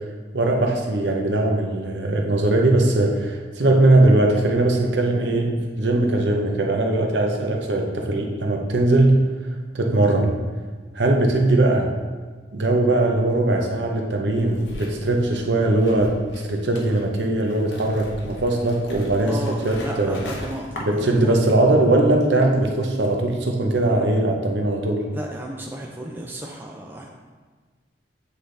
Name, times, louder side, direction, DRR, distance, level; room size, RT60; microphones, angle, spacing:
voice 1, 0.3-9.2 9.7-10.4 10.9-11.9 12.5-16.2 16.4-20.2 20.8-25.1, right 2 dB, 70° right, 1 dB, 0.8 m, -20 dB
voice 2, 5.9-6.2 19.2-21.4 25.1-27.1, right 1 dB, 10° right, 0 dB, 0.4 m, -34 dB
sound 1, 14.3-21.6 21.8-23.1, left 1 dB, 70° left, 1.0 m, -40 dB
8.2 x 3.9 x 3.3 m, 1.4 s
head